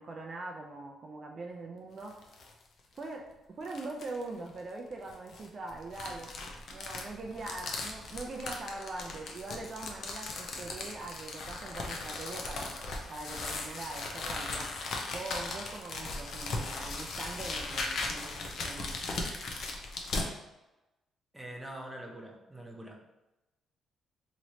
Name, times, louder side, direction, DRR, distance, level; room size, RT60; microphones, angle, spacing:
voice 1, 0.0-2.2 2.9-6.3 6.7-12.8 13.1-14.7 15.1-19.0, right 2 dB, 45° right, 1 dB, 0.4 m, -42 dB
sound 1, 2.0-2.5 3.0-3.1 3.6-4.2 5.1-20.3, left 3 dB, 65° left, 0.5 m, -38 dB
voice 2, 21.3-23.0, right 1 dB, 5° right, 0 dB, 0.6 m, -44 dB
3.0 x 3.0 x 2.6 m, 1.0 s
cardioid pair, 90°, 0 cm